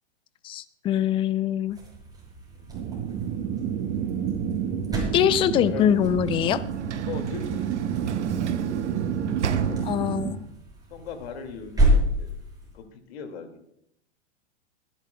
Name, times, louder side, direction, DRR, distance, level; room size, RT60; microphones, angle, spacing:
voice 1, 0.4-1.8 5.1-6.6 9.9-10.4, left 10 dB, 15° left, 16 dB, 0.3 m, -23 dB
sound 1, 1.6-12.8, equal, 10° right, 5.6 m, -31 dB
sound 2, 2.7-10.3, right 8 dB, 35° right, 1.3 m, -29 dB
voice 2, 5.6-6.0 7.1-8.2 9.6-9.9 10.9-11.9 12.2-12.3 12.7-13.6, left 6 dB, 60° left, 6 dB, 2.3 m, -39 dB
Sliding door / Slam, 5.7-10.5, right 8 dB, 85° right, 0.7 m, -34 dB
24.5 x 10.5 x 2.3 m, 0.74 s
hypercardioid pair, 105°, 34 cm